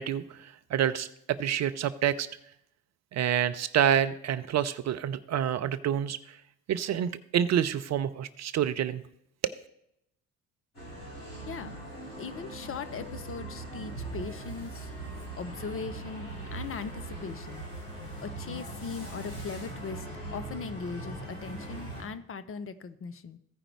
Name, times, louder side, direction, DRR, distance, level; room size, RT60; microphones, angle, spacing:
voice 1, 0.0-2.3 3.1-6.4 6.7-9.0 9.4-9.5, right 9 dB, 40° right, 12 dB, 0.5 m, -28 dB
sound 1, 10.7-22.0, right 2 dB, 85° left, 2.7 m, -40 dB
voice 2, 11.5-11.8 12.2-14.9 15.3-17.6 18.2-23.4, left 5 dB, 30° left, 11 dB, 0.6 m, -39 dB
15.0 x 5.0 x 4.4 m, 0.78 s
figure-of-eight pair, 50°, 44 cm